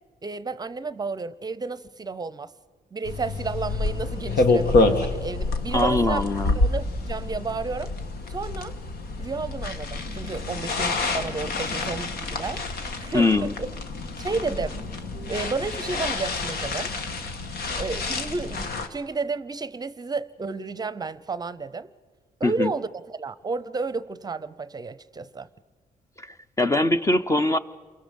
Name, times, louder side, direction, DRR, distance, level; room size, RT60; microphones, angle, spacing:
voice 1, 0.2-2.5 2.9-6.2 6.5-7.9 8.3-8.7 9.2-12.6 13.0-13.7 14.2-14.8 15.1-16.9 17.8-21.9 22.4-25.5, right 4 dB, 25° right, 16 dB, 0.7 m, -32 dB
sound 1, 3.0-18.9, left 3 dB, 75° left, 1.8 m, -27 dB
voice 2, 5.7-6.6 13.1-13.5 22.4-22.7 26.2-27.6, left 2 dB, 20° left, 11 dB, 0.6 m, -22 dB
28.0 x 23.0 x 5.3 m, 1.5 s
cardioid pair, 130°, 16 cm